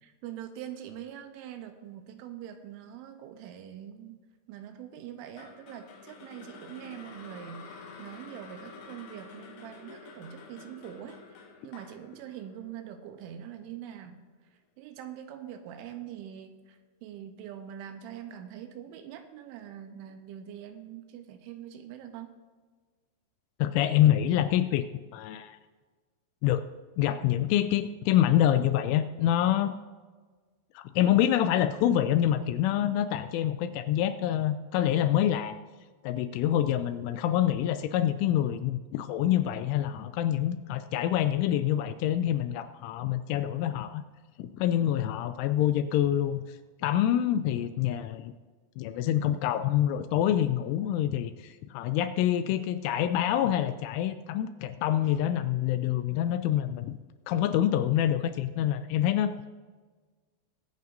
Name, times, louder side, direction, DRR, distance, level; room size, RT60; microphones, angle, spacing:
voice 1, 0.0-4.2 4.5-11.2 11.6-14.2 14.8-22.4, right 10 dB, 80° right, 7 dB, 3.0 m, -43 dB
sound 1, 5.4-13.6, left 4 dB, 65° left, 3.0 m, -49 dB
voice 2, 23.6-24.8 25.1-25.6 26.4-26.6 27.0-29.8 30.8-35.6 36.0-44.0 44.4-46.6 46.8-48.3 48.8-57.0 57.3-59.3, left 11 dB, 85° left, 10 dB, 2.9 m, -26 dB
22.0 x 9.4 x 2.6 m, 1.4 s
omnidirectional pair, 5.8 m